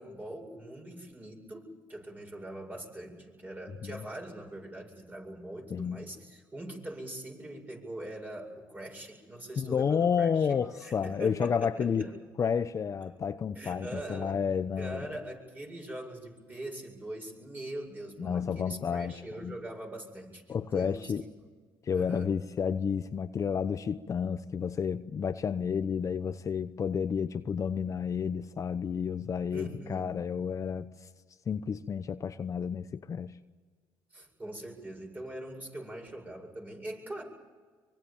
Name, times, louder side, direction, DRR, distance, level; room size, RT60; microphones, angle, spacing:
voice 1, 0.0-12.1 13.5-14.4 14.8-21.1 21.4-21.5 21.9-22.3 29.5-30.1 34.1-37.2, right 1 dB, 20° right, 7.9 m, -42 dB
voice 2, 5.7-6.0 9.6-12.1 12.4-15.1 18.2-19.6 20.5-21.2 21.8-31.1 31.5-33.4, left 7 dB, 45° left, 0.9 m, -31 dB
24.5 x 23.5 x 7.4 m
supercardioid pair, 80°, 8 cm